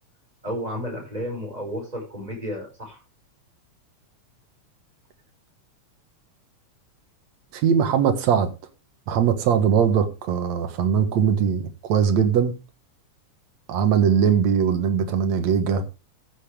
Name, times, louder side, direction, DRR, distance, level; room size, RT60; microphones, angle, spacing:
voice 1, 0.4-3.0, equal, 10° right, 5.6 m, -32 dB
voice 2, 7.5-8.5 9.1-12.5 13.7-15.8, right 7 dB, 70° right, 2.6 m, -20 dB
14.0 x 8.6 x 3.5 m
omnidirectional pair, 3.3 m